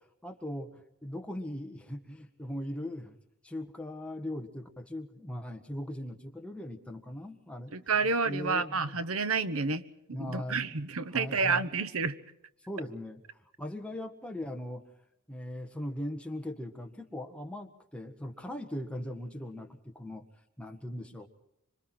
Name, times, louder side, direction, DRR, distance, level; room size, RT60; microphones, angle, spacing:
voice 1, 0.2-3.2 3.4-7.7 8.2-9.0 10.1-10.7 11.1-11.7 12.7-13.2 13.6-14.8 15.3-20.2 20.6-21.3, left 1 dB, 5° left, 3 dB, 1.6 m, -39 dB
voice 2, 7.7-9.8 10.2-12.2, right 4 dB, 75° right, 13 dB, 1.0 m, -29 dB
26.0 x 25.5 x 4.5 m, 0.83 s
head